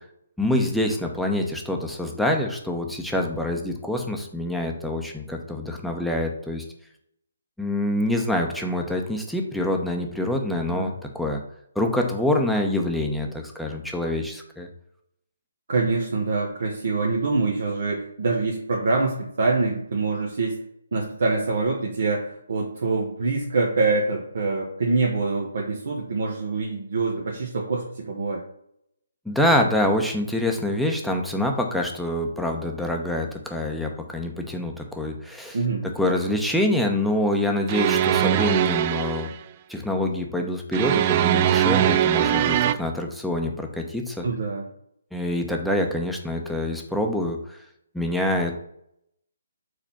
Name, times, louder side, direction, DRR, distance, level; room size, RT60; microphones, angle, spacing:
voice 1, 0.4-6.6 7.6-11.4 11.7-14.7 29.3-35.6 35.8-39.3 39.7-44.2 45.1-47.6 47.9-48.6, left 1 dB, ahead, 1 dB, 0.9 m, -26 dB
voice 2, 15.7-20.6 20.9-28.4 35.5-35.9 44.2-44.7, right 3 dB, 65° right, -2 dB, 1.3 m, -25 dB
sound 1, 37.7-39.3 40.7-42.7, right 11 dB, 35° right, 0.3 m, -21 dB
4.9 x 4.3 x 5.8 m, 0.74 s
figure-of-eight pair, 145°, 0 cm